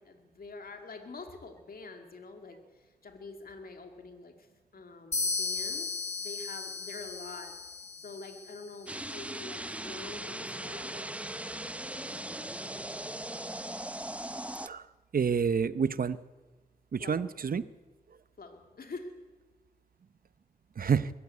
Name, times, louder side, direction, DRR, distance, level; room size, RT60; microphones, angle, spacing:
voice 1, 0.0-4.5 4.7-5.9 6.2-7.6 8.0-10.9 17.0-17.2 18.4-19.1, left 3 dB, 75° left, 5 dB, 2.4 m, -46 dB
sound 1, 5.1-8.9, left 3 dB, 45° left, 1.3 m, -36 dB
sound 2, 8.9-14.7, right 1 dB, 10° right, 0.7 m, -39 dB
voice 2, 15.1-16.2 16.9-17.6 20.8-21.1, right 6 dB, 70° right, 15 dB, 0.8 m, -28 dB
22.0 x 14.5 x 8.4 m, 1.3 s
cardioid pair, 65°, 15 cm